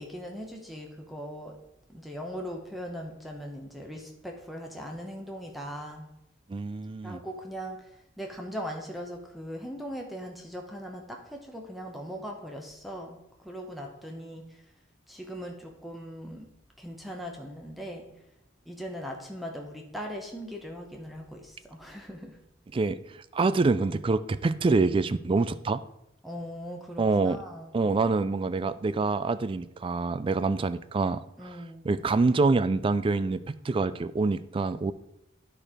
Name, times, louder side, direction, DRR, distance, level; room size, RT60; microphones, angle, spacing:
voice 1, 0.0-1.6 1.9-6.1 7.0-13.2 13.4-14.6 15.1-16.5 16.8-18.1 18.6-22.4 26.2-27.7 31.4-31.9, equal, ahead, 1 dB, 0.8 m, -39 dB
voice 2, 6.5-7.2 22.7-25.8 27.0-27.4 27.7-31.6 31.8-34.9, right 3 dB, 30° right, 15 dB, 0.3 m, -26 dB
9.8 x 4.5 x 4.9 m, 0.85 s
head